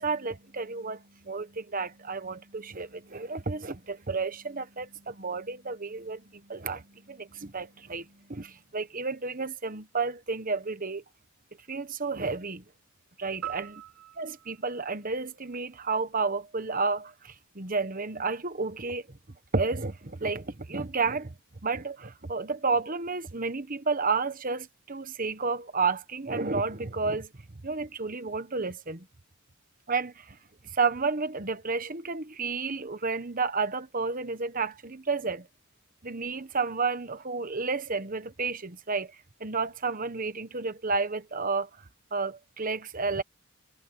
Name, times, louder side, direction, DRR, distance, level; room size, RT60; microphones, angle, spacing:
voice 1, 0.0-11.0 11.7-12.6 13.2-13.8 14.2-19.0 19.5-21.3 21.6-27.3 27.6-29.0 29.9-30.4 30.7-35.5 36.0-39.1 39.4-41.7 42.1-43.2, right 4 dB, 40° right, 1.2 m, -31 dB
sound 1, 13.4-15.9, right 11 dB, 70° right, 4.6 m, -43 dB
head